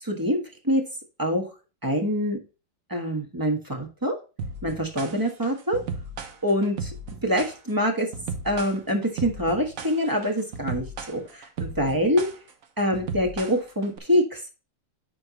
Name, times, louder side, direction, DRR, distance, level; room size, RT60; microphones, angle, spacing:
voice 1, 0.0-0.8 1.2-1.5 1.8-2.4 2.9-4.2 4.6-5.8 6.4-6.9 7.2-8.1 8.4-12.2 12.8-14.5, equal, 15° right, 2 dB, 1.2 m, -25 dB
sound 1, 4.4-14.0, right 4 dB, 55° right, 1.1 m, -35 dB
9.8 x 4.5 x 3.0 m, 0.32 s
omnidirectional pair, 2.0 m